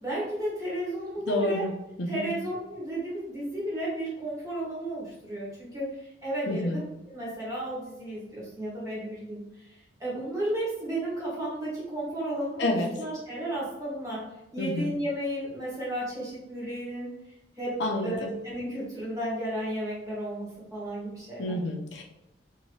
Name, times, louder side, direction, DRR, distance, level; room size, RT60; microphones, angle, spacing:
voice 1, 0.0-1.6 2.1-6.7 7.1-14.2 14.5-17.1 17.6-17.8 18.0-21.6, right 1 dB, 20° right, -7 dB, 1.2 m, -33 dB
voice 2, 1.3-1.7 2.0-2.3 6.5-6.8 12.6-12.9 14.6-14.9 17.8-18.3 21.4-22.0, left 1 dB, 70° left, 2 dB, 0.4 m, -29 dB
2.7 x 2.6 x 3.1 m, 0.91 s
head